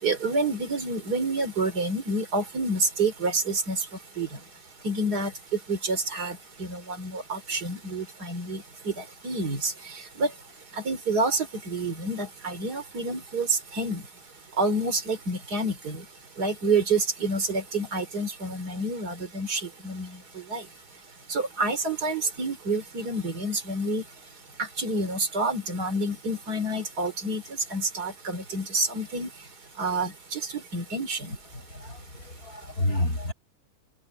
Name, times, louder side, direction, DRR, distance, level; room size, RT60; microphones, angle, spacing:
voice 1, 0.0-3.8 4.2-4.3 4.8-5.3 5.7-9.7 10.2-10.3 10.9-14.0 14.6-16.0 16.4-20.2 20.5-20.6 21.3-24.0 24.6-27.4 27.7-29.3 29.8-31.3, right 2 dB, 85° right, 3.7 m, -28 dB
voice 2, 31.5-33.3, left 1 dB, 70° left, 7.0 m, -30 dB
omnidirectional pair, 1.7 m